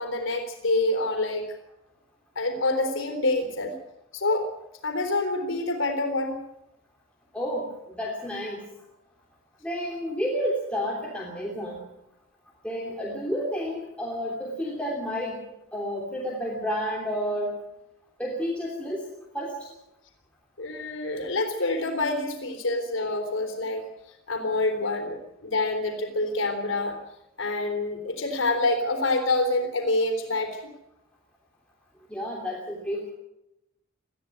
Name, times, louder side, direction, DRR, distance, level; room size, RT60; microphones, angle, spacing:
voice 1, 0.0-1.5 2.4-3.7 4.1-4.5 4.8-6.4 20.6-23.9 24.3-27.0 27.4-30.6, left 2 dB, 80° left, 5 dB, 3.7 m, -27 dB
voice 2, 7.3-8.7 9.6-11.8 12.6-15.4 15.7-17.5 18.2-19.0 19.3-19.7 32.1-33.1, equal, 5° left, -3 dB, 3.1 m, -30 dB
20.0 x 14.0 x 9.4 m, 0.87 s
head